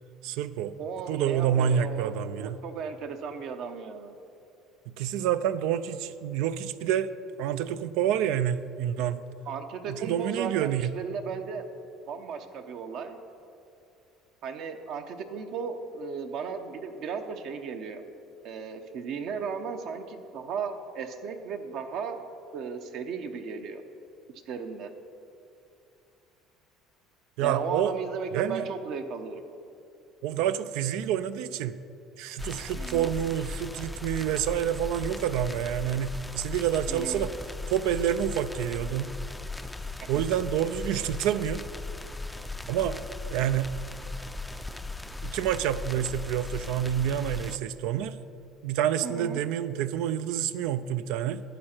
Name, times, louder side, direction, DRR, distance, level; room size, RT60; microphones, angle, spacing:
voice 1, 0.2-0.7 1.1-2.6 4.9-7.1 7.4-9.2 9.9-10.9 27.4-27.9 28.3-28.7 30.2-31.8 32.2-37.3 37.7-39.2 40.1-41.6 42.7-43.0 43.3-43.7 45.2-48.2 48.6-51.4, right 10 dB, 80° right, 13 dB, 0.3 m, -28 dB
voice 2, 0.8-4.2 9.5-11.7 12.1-13.2 14.4-18.0 18.4-22.2 22.5-23.8 24.5-24.9 27.4-29.4 32.7-33.1 36.9-37.3 40.0-40.1 49.0-49.4, right 5 dB, 60° right, 6 dB, 0.8 m, -35 dB
sound 1, 32.4-47.6, left 3 dB, 5° left, 0.4 m, -38 dB
12.0 x 8.7 x 4.4 m, 2.6 s
cardioid pair, 120°, 0 cm